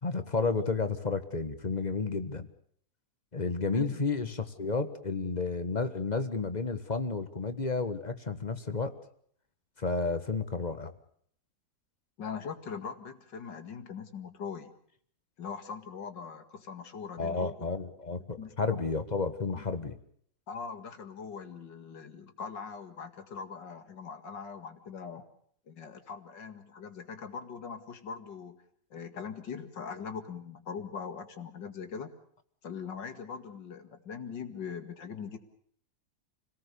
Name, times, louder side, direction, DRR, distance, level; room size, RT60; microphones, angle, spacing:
voice 1, 0.0-2.5 3.3-9.0 9.8-10.9 17.2-20.0, left 4 dB, 25° left, 10 dB, 1.5 m, -31 dB
voice 2, 12.2-14.7 15.4-17.7 18.4-18.8 19.5-19.8 20.5-25.2 25.7-28.6 28.9-32.1 32.6-35.4, left 6 dB, 70° left, 7 dB, 2.7 m, -41 dB
28.5 x 18.5 x 6.9 m, 0.64 s
omnidirectional pair, 2.0 m